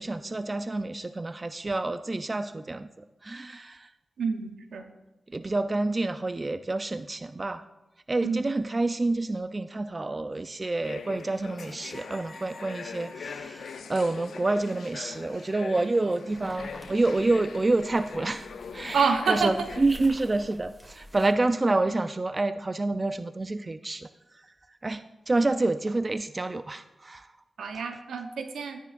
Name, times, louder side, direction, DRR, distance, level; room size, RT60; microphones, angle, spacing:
voice 1, 0.0-3.9 5.3-7.6 8.1-24.1 24.8-27.3, right 2 dB, 35° right, 12 dB, 0.4 m, -28 dB
voice 2, 4.2-4.9 8.2-8.5 18.9-19.5 27.6-28.8, right 5 dB, 85° right, 7 dB, 0.8 m, -27 dB
sound 1, 10.8-19.8, left 6 dB, 80° left, 0.5 m, -42 dB
sound 2, 11.9-15.6 16.1-16.9 18.3-18.7, left 1 dB, 25° left, 3.2 m, -52 dB
sound 3, 16.3-21.3, equal, 5° right, 2.3 m, -48 dB
12.5 x 9.6 x 2.5 m, 0.97 s
cardioid pair, 45°, 0 cm